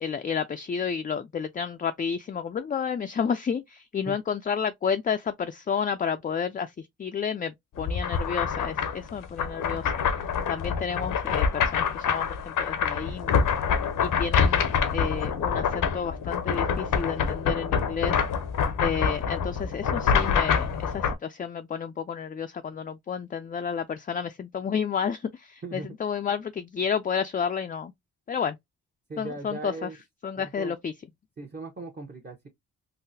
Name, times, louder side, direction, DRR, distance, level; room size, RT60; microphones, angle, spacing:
voice 1, 0.0-10.0 10.5-13.5 14.0-18.2 18.8-27.9 28.3-28.6 29.2-29.9 30.2-30.9, left 7 dB, 30° left, 0.3 m, -31 dB
sound 1, 7.8-21.1, left 6 dB, 80° left, 0.7 m, -26 dB
voice 2, 25.6-25.9 29.1-30.0 30.4-30.7 31.4-32.5, right 3 dB, 35° right, 0.9 m, -38 dB
3.7 x 2.1 x 2.6 m
cardioid pair, 60°, 31 cm